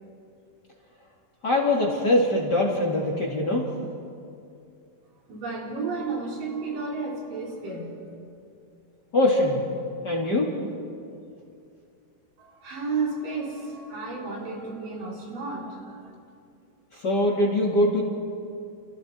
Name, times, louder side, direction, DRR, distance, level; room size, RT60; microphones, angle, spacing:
voice 1, 1.4-3.7 9.1-9.6 10.0-10.5 17.0-18.0, left 1 dB, 30° left, -2 dB, 2.9 m, -22 dB
voice 2, 5.3-8.1 12.4-16.1, right 4 dB, 75° right, -2 dB, 5.4 m, -32 dB
30.0 x 29.0 x 4.6 m, 2.5 s
omnidirectional pair, 4.0 m